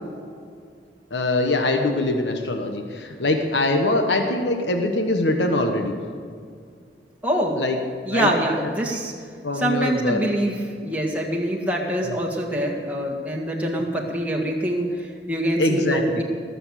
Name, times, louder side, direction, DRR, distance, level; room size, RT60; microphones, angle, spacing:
voice 1, 1.1-5.9 7.6-7.8 8.1-8.3 8.6-8.7 9.4-10.2 12.0-12.1 15.6-16.2, left 2 dB, 85° left, 4 dB, 1.3 m, -23 dB
voice 2, 7.2-7.6 8.1-9.1 9.6-10.5 10.8-16.2, right 1 dB, 10° right, -1 dB, 1.9 m, -24 dB
18.5 x 7.1 x 8.4 m, 2.2 s
head